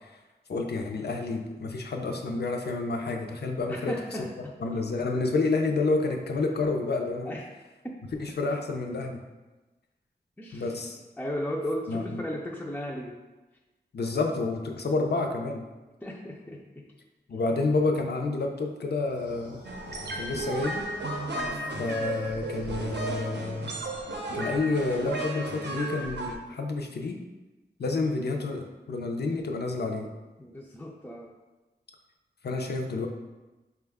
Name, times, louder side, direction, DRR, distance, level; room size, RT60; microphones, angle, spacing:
voice 1, 0.5-4.0 4.6-7.4 8.2-9.2 10.5-11.0 11.9-12.2 13.9-15.7 17.3-19.6 20.2-20.9 21.8-23.8 24.3-27.2 27.8-30.1 32.4-33.1, left 3 dB, 65° left, 2 dB, 0.5 m, -29 dB
voice 2, 3.7-4.6 7.3-7.4 7.8-7.9 10.4-10.7 11.2-13.2 16.0-16.9 21.3-21.7 30.4-31.3, equal, 10° left, -1 dB, 0.4 m, -35 dB
sound 1, 19.0-23.9, left 1 dB, 80° left, 1.1 m, -48 dB
sound 2, 19.6-26.4, right 2 dB, 75° right, 0.5 m, -34 dB
4.4 x 2.2 x 3.4 m, 1.1 s
wide cardioid pair, 85°, 18 cm